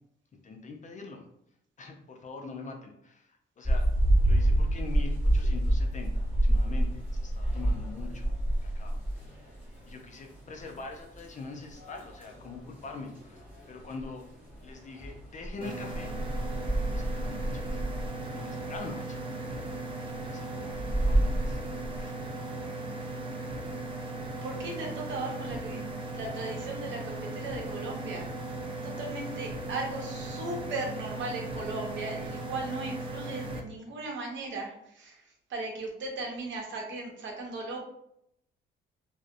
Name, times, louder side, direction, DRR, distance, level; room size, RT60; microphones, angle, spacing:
voice 1, 0.4-1.3 1.8-3.9 4.2-8.3 8.6-9.4 9.9-14.3 14.6-16.1 16.9-17.8 18.3-19.6 20.3-20.7 21.0-21.6 22.0-22.2 22.4-22.9, left 4 dB, 40° left, 3 dB, 0.4 m, -44 dB
sound 1, 3.6-22.0, right 1 dB, 10° right, 1.2 m, -29 dB
sound 2, 15.6-33.6, right 2 dB, 25° right, 0.4 m, -37 dB
voice 2, 24.4-28.3 28.8-35.2 35.5-37.8, right 2 dB, 65° right, 0 dB, 0.8 m, -37 dB
2.5 x 2.0 x 2.5 m, 0.75 s
cardioid pair, 95°, 21 cm